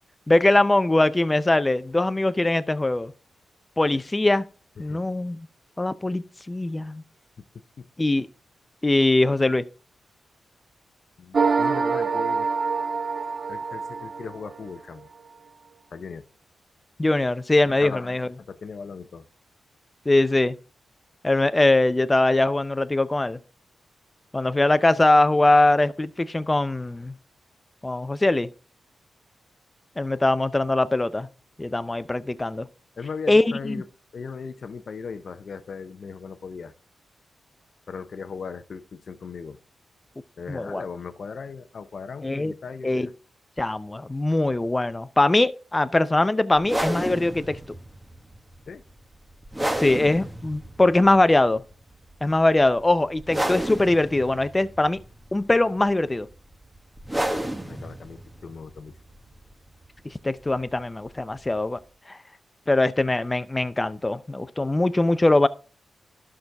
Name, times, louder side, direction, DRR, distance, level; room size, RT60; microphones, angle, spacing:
voice 1, 0.3-3.1 3.8-4.4 4.8-5.5 5.8-7.0 8.0-8.3 8.8-9.6 17.0-18.3 20.1-20.6 21.2-23.4 24.3-27.1 27.8-28.5 30.0-31.3 31.6-32.7 33.3-33.8 40.5-40.8 42.2-42.5 42.8-43.1 43.6-47.6 49.8-51.6 52.2-55.0 55.3-56.3 60.2-61.8 62.1-62.2 62.7-65.5, left 2 dB, 25° left, 0.6 m, -21 dB
voice 2, 11.2-12.5 13.5-15.1 15.9-16.3 17.7-19.3 33.0-33.9 34.1-36.7 37.9-39.6 40.4-43.1 48.7-48.8 57.7-58.9, left 5 dB, 60° left, 0.7 m, -38 dB
sound 1, 11.3-14.7, right 5 dB, 55° right, 0.4 m, -25 dB
sound 2, 46.6-61.9, right 1 dB, 15° right, 1.4 m, -33 dB
11.5 x 6.2 x 3.5 m
cardioid pair, 55°, 0 cm